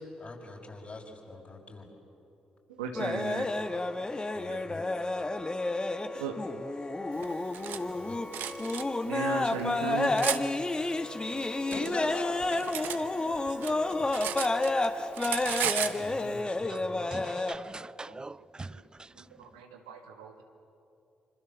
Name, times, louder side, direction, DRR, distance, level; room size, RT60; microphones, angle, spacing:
voice 1, 0.2-1.9 4.3-4.8 7.7-8.2 11.7-13.3 13.7-14.1 15.8-17.1, left 2 dB, 45° left, 6.2 m, -43 dB
voice 2, 2.7-3.5 4.5-4.6 6.1-6.4 9.0-10.1 10.7-10.8 11.3-11.4 12.9-13.8 18.1-18.2 18.7-18.8 19.2-20.4, right 6 dB, 90° right, 1.7 m, -38 dB
sound 1, 2.9-17.5, left 2 dB, 25° left, 1.5 m, -30 dB
Cutlery silverware, 7.2-7.8 8.3-8.8 9.5-10.4 11.3-13.0 13.3-14.9 15.1-16.0, right 10 dB, 70° right, 1.0 m, -34 dB
voice 3, 17.1-18.8, right 3 dB, 25° right, 0.5 m, -42 dB
26.5 x 25.5 x 7.3 m
hypercardioid pair, 40°, 3 cm